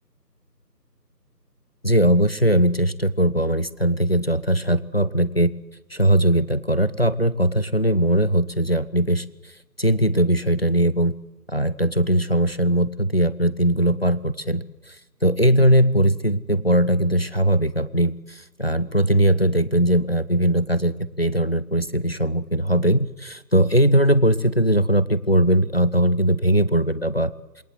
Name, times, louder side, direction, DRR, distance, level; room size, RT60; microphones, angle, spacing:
voice 1, 1.8-5.5 5.9-9.2 9.8-11.1 11.5-14.6 15.2-18.1 18.6-27.3, right 1 dB, 35° left, 17 dB, 0.9 m, -20 dB
27.5 x 22.0 x 8.0 m, 1.0 s
figure-of-eight pair, 175°, 50 cm